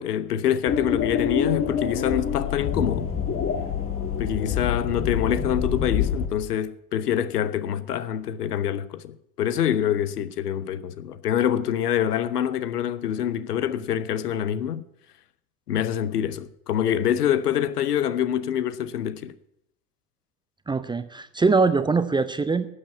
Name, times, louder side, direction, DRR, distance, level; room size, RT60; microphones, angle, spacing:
voice 1, 0.0-3.1 4.2-14.8 15.7-19.3, left 10 dB, 75° left, 0.8 m, -25 dB
sound 1, 0.7-6.3, left 7 dB, 30° left, 1.5 m, -26 dB
voice 2, 20.7-22.7, right 4 dB, 10° right, 0.5 m, -22 dB
12.0 x 7.9 x 8.1 m
figure-of-eight pair, 70°, 47 cm